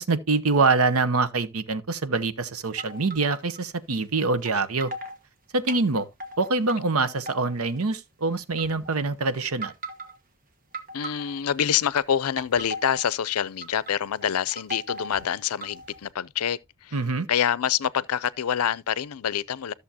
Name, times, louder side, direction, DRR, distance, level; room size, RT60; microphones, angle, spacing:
voice 1, 0.0-4.9 5.5-6.1 6.4-9.7 16.9-17.3, right 3 dB, 75° right, 0.9 m, -25 dB
sound 1, 2.8-3.6 4.4-4.5 4.8-5.2 5.7-6.8 7.1-7.8 8.5-9.0 9.5-10.2 10.7-11.6 12.2-13.1 13.6-13.9 14.2-16.1, right 1 dB, 40° right, 1.2 m, -38 dB
voice 2, 10.9-17.0 17.3-19.7, left 8 dB, 85° left, 0.5 m, -26 dB
13.5 x 6.8 x 2.8 m
head